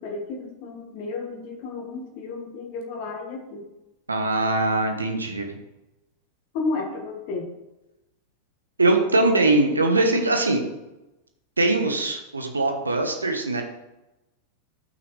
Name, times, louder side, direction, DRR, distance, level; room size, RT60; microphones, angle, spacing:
voice 1, 0.0-3.6 6.5-7.5, left 3 dB, 45° left, 2 dB, 1.5 m, -32 dB
voice 2, 4.1-5.5 8.8-10.6 11.6-13.6, right 2 dB, 80° right, 4 dB, 1.3 m, -21 dB
13.5 x 6.0 x 3.2 m, 0.99 s
figure-of-eight pair, 90°, 0 cm